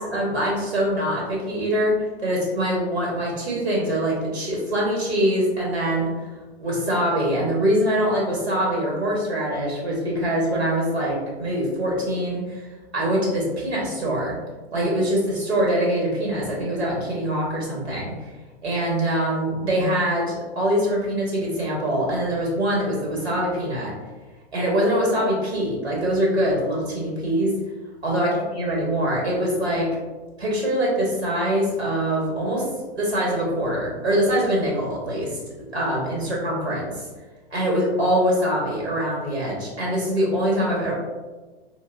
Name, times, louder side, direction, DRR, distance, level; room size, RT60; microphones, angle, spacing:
voice 1, 0.0-6.3 6.6-12.6 12.9-14.4 14.7-18.1 18.6-23.9 24.5-27.6 28.0-29.9 30.4-32.7 33.0-35.4 35.7-37.0 37.5-40.9, equal, 85° right, -3 dB, 1.3 m, -23 dB
3.8 x 2.5 x 2.4 m, 1.3 s
figure-of-eight pair, 110°, 31 cm